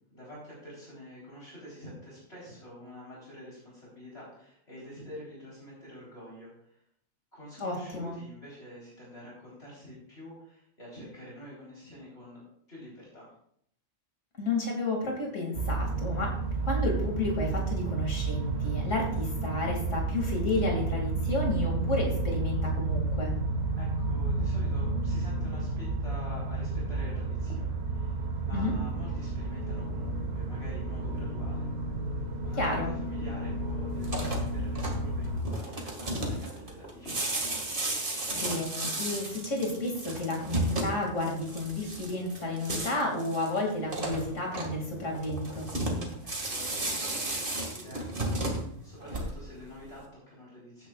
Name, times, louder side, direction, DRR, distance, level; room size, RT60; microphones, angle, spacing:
voice 1, 0.1-6.8 7.3-13.3 23.8-31.7 32.4-37.2 46.2-50.9, equal, 55° left, -7 dB, 4.0 m, -47 dB
voice 2, 7.6-8.1 14.4-23.3 28.5-28.7 32.6-32.9 38.3-45.7, left 2 dB, 80° left, 0 dB, 2.7 m, -31 dB
sound 1, 15.5-35.4, right 3 dB, 60° right, 1.5 m, -31 dB
sound 2, 33.9-49.6, right 1 dB, 45° right, 2.1 m, -34 dB
15.5 x 9.8 x 2.4 m, 0.67 s
omnidirectional pair, 1.3 m